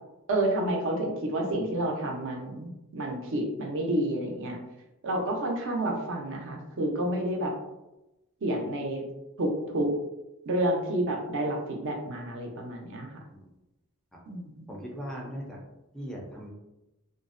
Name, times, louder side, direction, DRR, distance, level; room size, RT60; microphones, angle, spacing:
voice 1, 0.3-4.6 5.0-7.5 8.4-9.0 9.4-9.9 10.4-13.2 14.3-14.5, right 1 dB, 60° right, 1 dB, 0.5 m, -29 dB
voice 2, 14.7-15.6 15.9-16.5, equal, 5° left, -3 dB, 0.4 m, -39 dB
2.5 x 2.0 x 2.4 m, 0.97 s
head